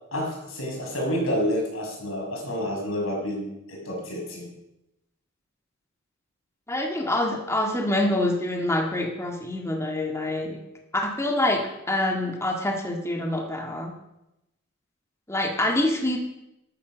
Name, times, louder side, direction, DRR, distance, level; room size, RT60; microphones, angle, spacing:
voice 1, 0.1-4.5, equal, 90° left, 0 dB, 6.4 m, -29 dB
voice 2, 6.7-10.6 10.9-11.6 11.9-13.9 15.3-16.2, left 1 dB, 15° left, 1 dB, 1.8 m, -26 dB
14.5 x 12.0 x 6.3 m, 0.89 s
head